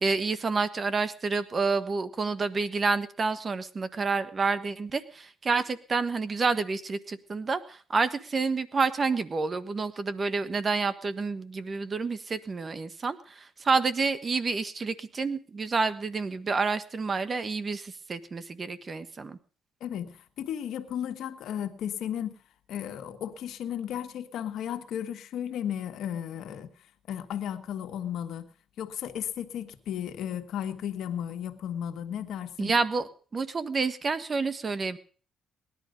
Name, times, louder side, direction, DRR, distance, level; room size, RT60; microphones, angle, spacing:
voice 1, 0.0-19.4 32.6-35.0, right 4 dB, 35° right, 1.3 m, -29 dB
voice 2, 19.8-22.4 22.7-26.7 27.1-28.5 28.8-32.7, left 9 dB, 75° left, 1.5 m, -34 dB
18.5 x 11.0 x 5.2 m
cardioid pair, 90°, 0 cm